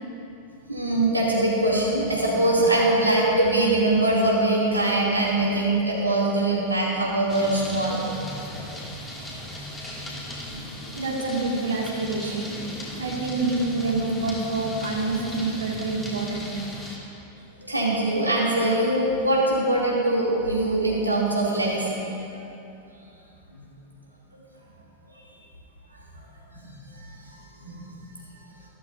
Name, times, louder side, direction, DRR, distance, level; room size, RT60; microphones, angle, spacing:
voice 1, 0.7-8.0 10.5-10.6 17.6-22.0 23.5-23.6 26.6-26.7 27.1-27.2 27.6-27.8, right 2 dB, 85° right, -5 dB, 2.7 m, -22 dB
sound 1, 7.3-17.0, left 1 dB, 10° left, 2.3 m, -37 dB
voice 2, 10.9-12.6 13.0-16.5, right 3 dB, 70° right, -2 dB, 2.0 m, -27 dB
15.5 x 13.0 x 2.7 m, 2.8 s
figure-of-eight pair, 90°, 0 cm